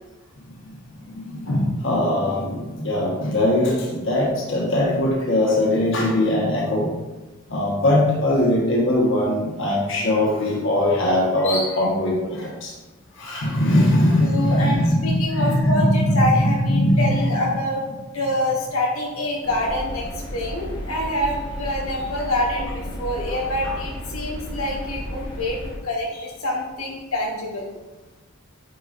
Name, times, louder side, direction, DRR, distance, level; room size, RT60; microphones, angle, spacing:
voice 1, 1.1-6.9 7.5-12.7 13.2-17.5 23.3-23.7, left 1 dB, 65° left, -3 dB, 1.5 m, -21 dB
voice 2, 14.2-17.8 18.1-25.6 25.8-27.7, left 1 dB, 85° left, -3 dB, 1.5 m, -26 dB
sound 1, 19.4-25.8, equal, 25° left, 1.3 m, -33 dB
9.1 x 5.0 x 2.6 m, 1.2 s
head